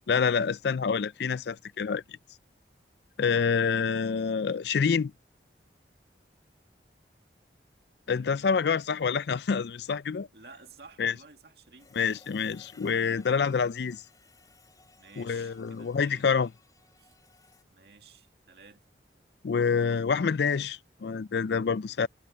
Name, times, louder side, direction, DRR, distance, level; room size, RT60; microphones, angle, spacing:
voice 1, 0.1-2.2 3.2-5.1 8.1-10.3 11.0-11.1 12.0-14.0 15.2-16.5 19.4-22.1, left 6 dB, 70° left, 0.4 m, -27 dB
voice 2, 8.1-8.7 10.3-12.2 15.0-16.3 17.0-17.1 17.7-18.8, right 4 dB, 65° right, 2.1 m, -53 dB
sound 1, 11.8-17.6, left 3 dB, 20° left, 4.2 m, -59 dB
head